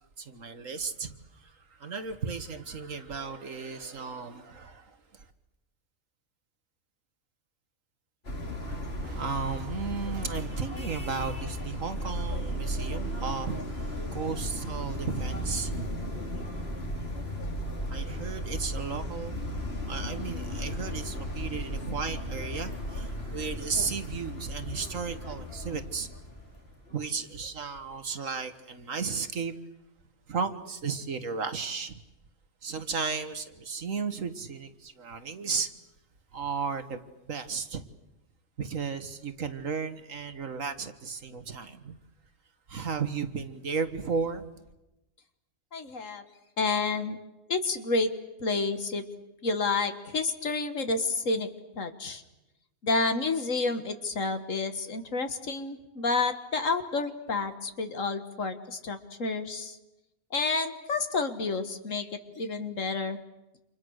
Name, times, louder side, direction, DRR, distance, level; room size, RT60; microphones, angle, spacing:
voice 1, 0.2-5.3 9.0-16.0 17.9-19.4 19.9-26.1 26.9-29.5 30.3-32.0 32.6-35.7 36.3-37.0 37.3-37.8 38.6-42.0 42.7-44.7, right 5 dB, 65° right, 1.9 m, -34 dB
sound 1, 8.3-27.1, equal, 45° left, 3.1 m, -35 dB
voice 2, 45.7-46.2 46.6-47.2 47.5-48.1 48.4-49.0 49.4-51.5 51.8-52.2 52.8-59.8 60.3-63.2, left 3 dB, 60° left, 2.1 m, -29 dB
29.5 x 27.5 x 6.5 m
omnidirectional pair, 1.5 m